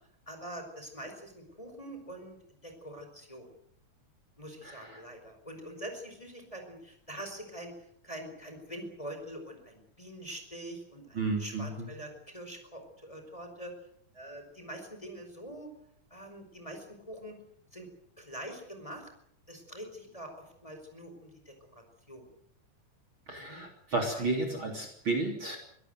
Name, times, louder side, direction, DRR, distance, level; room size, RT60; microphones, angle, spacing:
voice 1, 0.3-3.5 4.4-7.7 8.0-13.7 14.1-15.7 16.1-17.3 17.7-17.9 18.2-19.1 19.5-22.3 23.3-23.7 24.1-24.3, right 1 dB, 10° left, 5 dB, 5.0 m, -44 dB
voice 2, 4.6-5.0 11.2-11.9 23.3-25.6, right 3 dB, 40° right, 2 dB, 4.0 m, -32 dB
23.5 x 18.0 x 7.9 m, 0.66 s
omnidirectional pair, 3.7 m